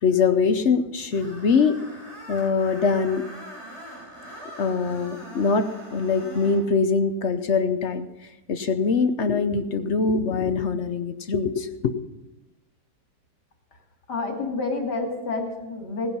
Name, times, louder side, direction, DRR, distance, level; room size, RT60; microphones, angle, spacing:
voice 1, 0.0-1.8 2.3-3.2 4.6-5.7 5.9-8.1 8.5-11.9, left 5 dB, 50° left, 9 dB, 0.9 m, -23 dB
Screech, 1.1-6.7, right 1 dB, 40° right, 5.1 m, -42 dB
voice 2, 14.1-16.1, left 3 dB, 80° left, 1 dB, 3.2 m, -29 dB
17.5 x 10.5 x 5.5 m, 0.99 s
omnidirectional pair, 1.8 m